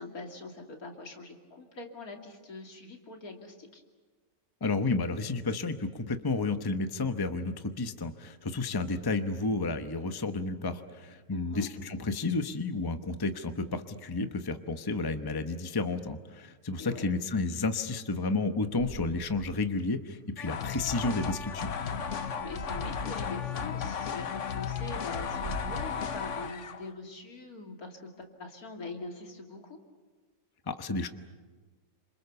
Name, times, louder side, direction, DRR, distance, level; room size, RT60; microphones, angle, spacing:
voice 1, 0.0-3.8 11.3-11.7 16.8-17.1 22.3-29.8, left 3 dB, 75° left, 3 dB, 3.2 m, -43 dB
voice 2, 4.6-21.7 30.7-31.1, left 3 dB, 20° left, 8 dB, 0.9 m, -31 dB
sound 1, 18.7-19.8 21.3-23.1 23.9-24.3 24.6-24.7 25.0-26.3, right 3 dB, 55° right, 1.8 m, -44 dB
sound 2, 20.4-26.9, left 7 dB, 60° left, 1.3 m, -35 dB
28.0 x 26.5 x 6.9 m, 1.4 s
omnidirectional pair, 1.5 m